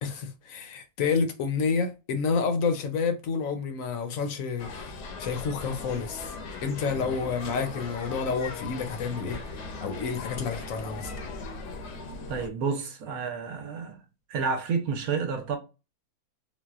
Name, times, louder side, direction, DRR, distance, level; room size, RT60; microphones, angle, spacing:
voice 1, 0.0-4.9 5.2-6.3 6.6-9.4 9.8-11.1, left 5 dB, 65° left, 0.9 m, -29 dB
sound 1, 4.6-12.5, left 4 dB, 85° left, 1.2 m, -39 dB
sound 2, 6.3-11.6, left 2 dB, 40° left, 0.7 m, -47 dB
voice 2, 12.3-14.0 14.3-15.6, right 5 dB, 70° right, 1.1 m, -30 dB
3.9 x 2.1 x 2.3 m
omnidirectional pair, 1.7 m